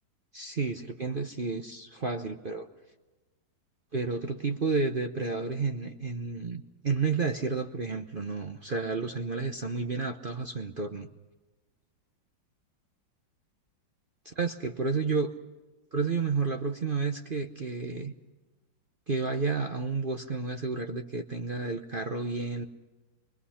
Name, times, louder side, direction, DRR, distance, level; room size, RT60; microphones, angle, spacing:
voice 1, 0.3-2.7 3.9-11.1 14.4-15.3 15.9-18.1 19.1-22.7, right 4 dB, 40° right, 5 dB, 0.8 m, -31 dB
28.5 x 21.5 x 5.7 m, 1.2 s
omnidirectional pair, 2.0 m